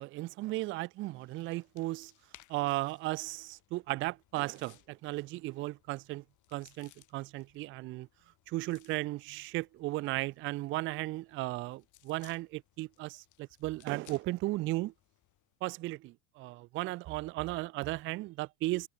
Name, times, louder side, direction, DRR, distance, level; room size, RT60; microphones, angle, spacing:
voice 1, 0.0-2.1 2.5-6.2 6.5-8.1 8.5-14.9 15.6-18.9, right 19 dB, 30° right, 0.4 m, -35 dB
sound 1, 0.9-15.6, left 15 dB, 40° left, 3.2 m, -64 dB
supercardioid pair, 140°, 46 cm